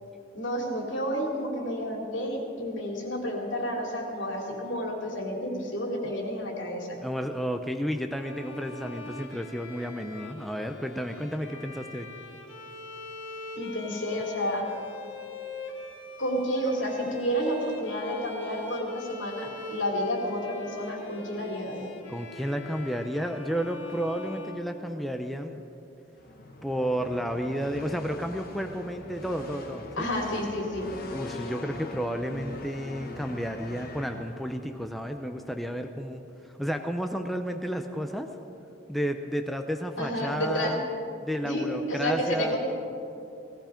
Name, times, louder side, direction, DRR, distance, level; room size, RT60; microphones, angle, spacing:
voice 1, 0.3-7.0 13.6-14.7 16.2-21.8 30.0-30.9 40.0-40.7 41.4-42.6, equal, 70° left, 0 dB, 3.0 m, -30 dB
voice 2, 7.0-12.1 22.1-25.6 26.6-30.1 31.1-36.2 36.6-38.3 38.9-40.8 41.2-42.6, equal, ahead, 5 dB, 0.6 m, -32 dB
Bowed string instrument, 8.1-25.3, left 3 dB, 90° left, 1.5 m, -42 dB
sound 1, 26.1-34.8, left 2 dB, 50° left, 1.3 m, -42 dB
17.5 x 16.0 x 5.1 m, 2.8 s
head